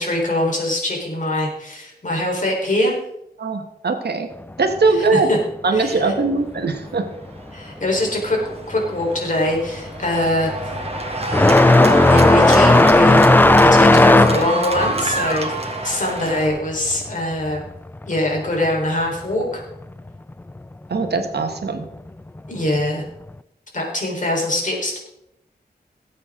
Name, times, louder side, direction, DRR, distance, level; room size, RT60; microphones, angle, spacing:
voice 1, 0.0-2.9 4.9-5.4 5.7-6.1 7.5-8.4 8.7-10.5 11.8-13.3 13.6-15.5 15.8-17.6 18.1-19.6 22.5-23.0 23.7-25.0, left 1 dB, 50° left, -1 dB, 4.2 m, -23 dB
voice 2, 3.4-4.3 4.6-5.3 5.6-7.1 20.9-21.9, right 3 dB, 90° right, 6 dB, 1.5 m, -20 dB
Cheering / Applause, 6.8-16.5, right 2 dB, 40° right, 1.7 m, -28 dB
sound 1, 8.7-9.1 9.4-17.7 18.0-19.0 20.0-20.1 20.9-21.0 22.8-22.9, left 2 dB, 10° left, 0.3 m, -15 dB
18.0 x 8.5 x 3.8 m, 0.82 s
wide cardioid pair, 90°, 16 cm